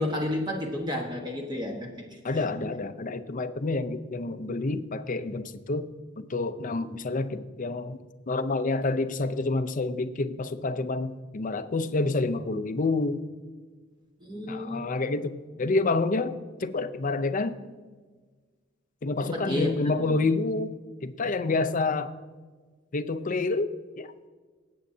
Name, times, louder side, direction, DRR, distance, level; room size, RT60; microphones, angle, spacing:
voice 1, 0.0-2.4 14.2-14.9 19.2-20.2, left 1 dB, 20° right, 0 dB, 1.3 m, -32 dB
voice 2, 2.2-5.9 6.2-8.0 8.3-13.3 14.5-17.6 19.0-20.7 21.0-22.1 22.9-23.7 24.0-24.1, left 3 dB, 40° left, 11 dB, 0.6 m, -28 dB
18.0 x 8.6 x 2.7 m, 1.4 s
head